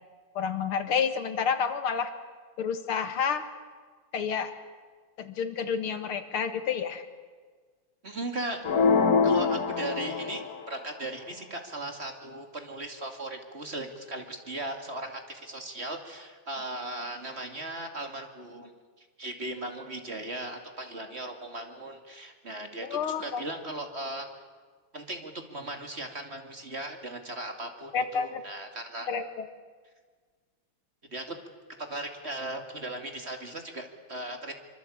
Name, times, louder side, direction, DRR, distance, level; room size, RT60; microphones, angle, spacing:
voice 1, 0.3-2.1 2.6-3.4 4.1-4.5 5.2-7.1 22.8-23.4 27.9-28.4 29.1-29.5, left 6 dB, 90° left, 8 dB, 2.6 m, -29 dB
voice 2, 8.0-8.6 9.2-10.4 10.7-18.7 19.0-24.3 24.9-29.1 31.1-31.4 31.8-34.5, right 1 dB, 30° right, 5 dB, 2.6 m, -37 dB
sound 1, 8.6-10.7, left 5 dB, 50° left, 1.7 m, -24 dB
25.5 x 24.5 x 8.7 m, 1.5 s
omnidirectional pair, 2.3 m